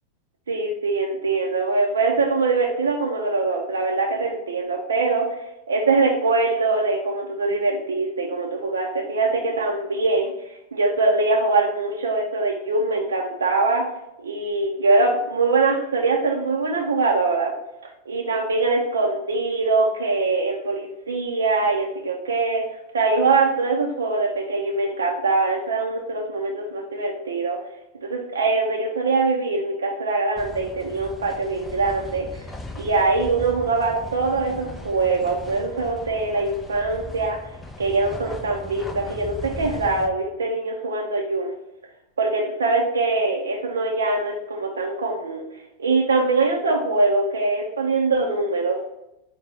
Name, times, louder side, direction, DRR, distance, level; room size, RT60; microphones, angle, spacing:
voice 1, 0.5-13.8 14.2-17.5 18.1-22.6 22.9-27.6 28.0-32.3 32.8-37.4 37.8-41.5 42.2-45.4 45.8-48.8, right 3 dB, 70° right, -1 dB, 0.6 m, -23 dB
sound 1, 30.4-40.1, left 2 dB, 10° left, 0.4 m, -38 dB
5.4 x 2.2 x 4.2 m, 0.88 s
figure-of-eight pair, 90°, 0 cm